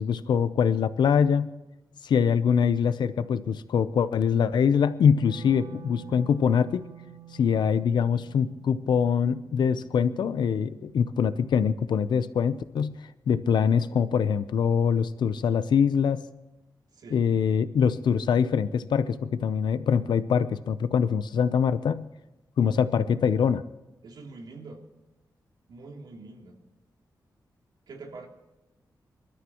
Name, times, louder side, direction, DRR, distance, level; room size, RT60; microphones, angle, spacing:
voice 1, 0.0-1.5 2.0-6.9 7.4-13.0 13.3-16.2 17.1-22.0 22.6-23.6, left 7 dB, 90° left, 13 dB, 0.6 m, -24 dB
Wind instrument woodwind instrument, 5.0-11.2, right 12 dB, 90° right, 1.3 m, -49 dB
voice 2, 24.0-24.8 25.7-26.5 27.9-28.3, right 3 dB, 75° right, 1 dB, 3.0 m, -44 dB
26.5 x 13.0 x 3.0 m, 1.0 s
wide cardioid pair, 170°, 7 cm